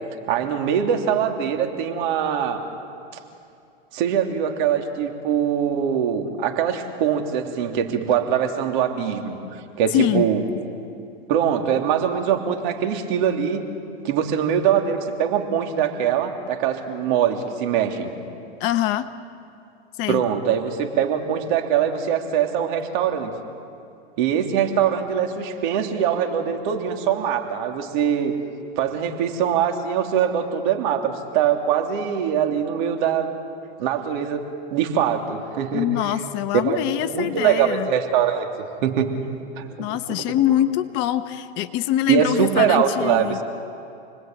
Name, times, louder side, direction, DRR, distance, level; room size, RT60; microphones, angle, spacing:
voice 1, 0.3-2.6 3.9-10.4 11.3-13.6 14.0-18.1 20.1-23.3 24.2-28.3 28.8-33.3 33.8-35.9 36.5-39.1 39.6-40.3 42.1-43.4, right 8 dB, 50° right, 4 dB, 3.1 m, -23 dB
voice 2, 9.9-10.2 18.6-19.1 20.0-20.2 35.7-37.9 39.8-43.4, left 13 dB, 35° left, 10 dB, 1.1 m, -23 dB
28.5 x 20.0 x 9.2 m, 2.5 s
hypercardioid pair, 135°, 32 cm